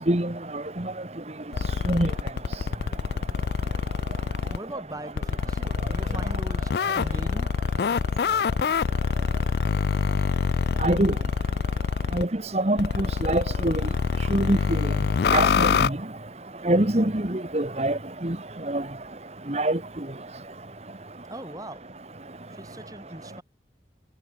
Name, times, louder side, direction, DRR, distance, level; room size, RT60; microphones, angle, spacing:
sound 1, 1.5-4.6 5.2-12.2 12.8-15.9, left 5 dB, 60° left, 0.4 m, -25 dB
voice 1, 4.5-7.5 21.3-21.8 22.5-23.4, right 1 dB, 20° right, 4.3 m, -40 dB
voice 2, 10.8-11.1 12.1-12.3 12.5-13.8 14.3-14.6 15.3-16.0 16.6-18.4 18.7-18.8 19.5-19.8, right 1 dB, 35° right, 1.7 m, -24 dB
head